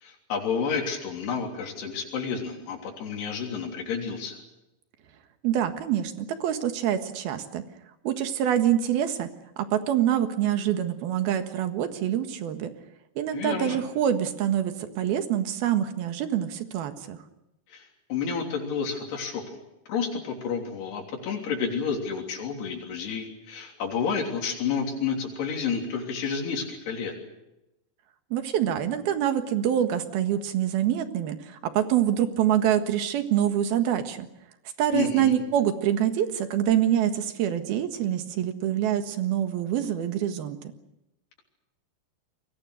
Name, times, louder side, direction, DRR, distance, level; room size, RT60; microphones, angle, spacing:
voice 1, 0.0-4.4 13.3-13.8 17.7-19.4 19.9-27.1 34.9-35.4, left 6 dB, 85° left, 0 dB, 5.5 m, -30 dB
voice 2, 5.4-7.6 8.1-9.3 9.6-12.7 13.2-17.2 28.3-34.3 34.8-40.6, right 10 dB, 75° right, 7 dB, 3.5 m, -25 dB
29.5 x 22.5 x 6.5 m, 0.89 s
omnidirectional pair, 4.5 m